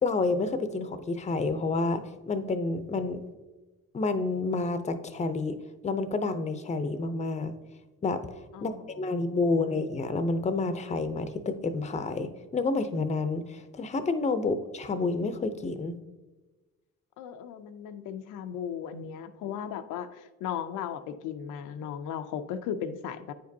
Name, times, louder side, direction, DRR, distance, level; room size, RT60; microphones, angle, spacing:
voice 1, 0.0-3.2 3.9-5.6 5.8-7.5 8.0-8.2 8.6-15.9, left 3 dB, 25° left, 10 dB, 0.5 m, -29 dB
voice 2, 8.5-8.9 17.2-23.3, left 8 dB, 85° left, 8 dB, 0.5 m, -36 dB
8.8 x 5.1 x 2.7 m, 1.2 s
cardioid pair, 90°, 30 cm